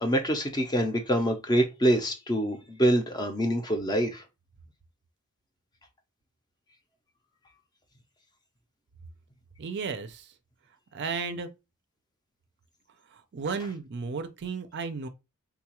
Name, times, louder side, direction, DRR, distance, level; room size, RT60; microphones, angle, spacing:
voice 1, 0.0-4.2, right 1 dB, 20° left, 0.5 m, -25 dB
voice 2, 9.6-10.3 10.9-11.5 13.3-15.1, right 5 dB, 50° right, 0.4 m, -33 dB
3.7 x 2.3 x 2.9 m
head